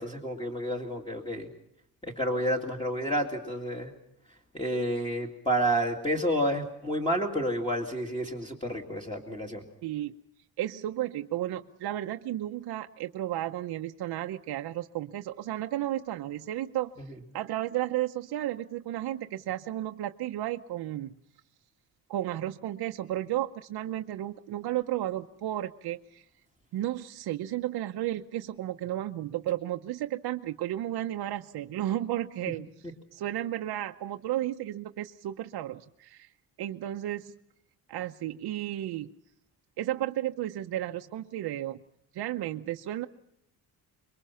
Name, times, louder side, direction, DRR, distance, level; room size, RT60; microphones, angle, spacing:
voice 1, 0.0-1.5 2.0-3.9 4.5-9.6, equal, 15° left, 0 dB, 2.3 m, -30 dB
voice 2, 9.8-10.2 10.6-16.9 17.3-21.1 22.1-26.2 26.7-32.7 33.1-36.3 36.6-37.3 37.9-39.1 39.8-41.8 42.1-43.1, right 13 dB, 80° right, 5 dB, 0.9 m, -33 dB
26.5 x 23.0 x 5.7 m, 0.73 s
cardioid pair, 165°, 38 cm